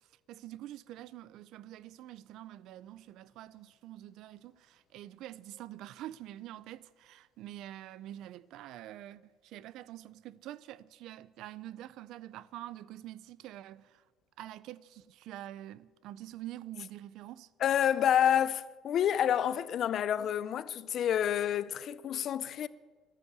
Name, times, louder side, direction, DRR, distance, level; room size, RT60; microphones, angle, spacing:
voice 1, 0.3-14.0 14.4-17.5, right 13 dB, 55° right, 0.4 m, -46 dB
voice 2, 17.6-22.7, left 10 dB, 40° left, 0.4 m, -28 dB
11.5 x 11.0 x 8.1 m
cardioid pair, 170°, 0 cm